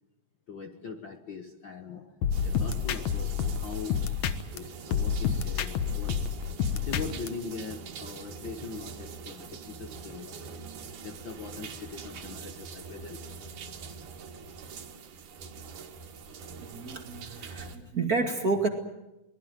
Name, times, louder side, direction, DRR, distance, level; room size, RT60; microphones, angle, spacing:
voice 1, 0.5-2.1 2.4-4.2 4.5-6.2 6.7-10.6 11.0-13.4 13.8-13.9 14.4-14.6, left 5 dB, 50° left, 6 dB, 1.7 m, -41 dB
sound 1, 2.2-4.6 4.9-7.3, left 7 dB, 70° left, 2.5 m, -28 dB
sound 2, 2.3-17.8, right 5 dB, 90° right, 3.4 m, -43 dB
voice 2, 16.6-18.7, right 3 dB, 30° right, 5 dB, 2.4 m, -30 dB
23.5 x 20.0 x 9.1 m, 0.95 s
omnidirectional pair, 3.4 m